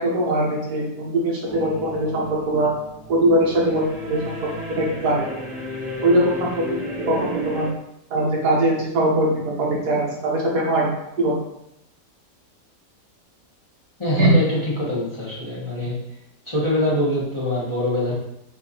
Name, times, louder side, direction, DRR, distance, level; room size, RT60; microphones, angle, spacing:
voice 1, 0.0-2.7 3.1-4.5 4.8-5.3 6.0-7.7 8.1-10.9 11.2-11.3 14.2-14.3, right 1 dB, 70° right, -2 dB, 1.5 m, -21 dB
sound 1, 1.5-7.7, equal, ahead, 0.9 m, -33 dB
voice 2, 14.0-16.0 16.4-18.1, left 1 dB, 20° left, -8 dB, 1.1 m, -23 dB
5.8 x 2.7 x 2.9 m, 0.79 s
omnidirectional pair, 1.8 m